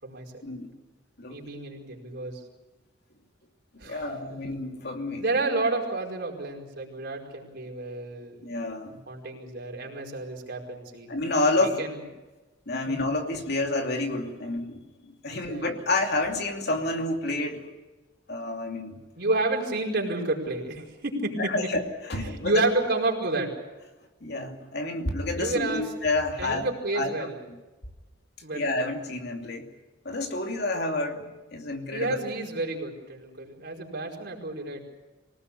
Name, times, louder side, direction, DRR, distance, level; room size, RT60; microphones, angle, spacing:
voice 1, 1.3-2.4 3.8-4.4 5.2-8.4 9.1-11.1 11.6-12.0 12.9-13.1 15.3-15.6 19.2-21.5 22.2-23.5 25.4-25.9 26.4-27.4 28.4-28.6 31.9-34.8, right 2 dB, 55° right, 0 dB, 5.1 m, -30 dB
voice 2, 3.8-5.2 8.4-9.0 11.1-11.8 12.7-17.7 18.3-19.0 21.4-22.6 24.2-26.7 26.9-27.6 28.5-29.7 30.0-32.2, left 2 dB, 55° left, 3 dB, 2.8 m, -29 dB
24.5 x 18.5 x 8.5 m, 1.1 s
head